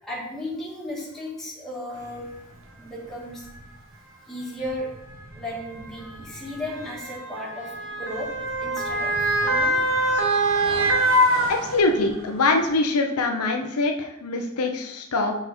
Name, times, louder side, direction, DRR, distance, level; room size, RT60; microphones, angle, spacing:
voice 1, 0.0-2.2 2.8-3.5 4.2-4.9 5.3-8.3 8.6-9.8, left 1 dB, ahead, -7 dB, 2.6 m, -35 dB
Motor vehicle (road) / Siren, 2.3-2.4 3.3-3.5 4.6-12.2 12.6-12.7, right 1 dB, 65° right, 1.2 m, -24 dB
voice 2, 11.5-15.4, left 3 dB, 85° left, 3 dB, 0.8 m, -23 dB
5.8 x 5.6 x 4.4 m, 0.83 s
head